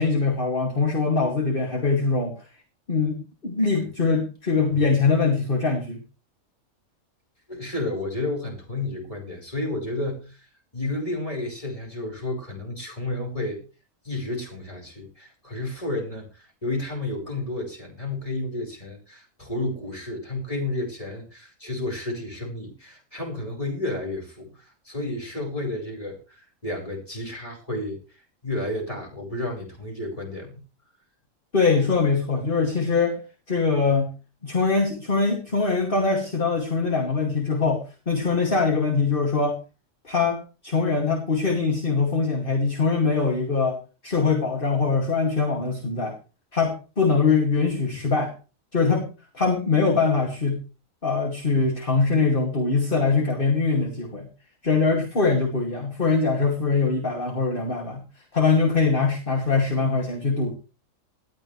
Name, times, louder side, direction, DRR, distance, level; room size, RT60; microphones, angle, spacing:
voice 1, 0.0-2.3 2.9-6.0 31.5-33.2 33.5-34.1 34.4-39.6 40.0-43.8 44.0-46.2 46.5-48.3 48.7-49.1 49.3-50.6 51.0-54.3 54.6-58.0 58.3-60.5, left 4 dB, 40° left, 2 dB, 2.8 m, -22 dB
voice 2, 7.5-10.5 10.7-13.6 14.0-28.0 28.4-30.6, left 2 dB, 25° left, 1 dB, 5.2 m, -31 dB
19.5 x 13.0 x 3.4 m, 0.33 s
omnidirectional pair, 1.4 m